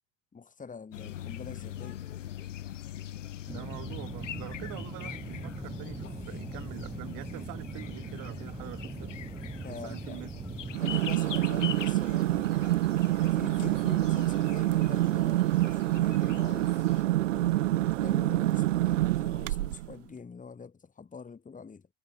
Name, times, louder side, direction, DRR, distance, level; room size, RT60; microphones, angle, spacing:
voice 1, 0.3-2.0 9.6-10.2 10.8-12.6 13.3-16.8 17.3-21.9, left 5 dB, 20° left, 4.6 m, -45 dB
sound 1, 0.9-17.0, left 11 dB, 75° left, 2.3 m, -43 dB
sound 2, 3.5-10.8, right 3 dB, 15° right, 2.7 m, -41 dB
voice 2, 3.5-9.2 9.7-10.3 10.6-10.7, right 26 dB, 55° right, 5.6 m, -45 dB
sound 3, 10.7-19.9, right 15 dB, 75° right, 0.5 m, -27 dB
figure-of-eight pair, 75°, 38 cm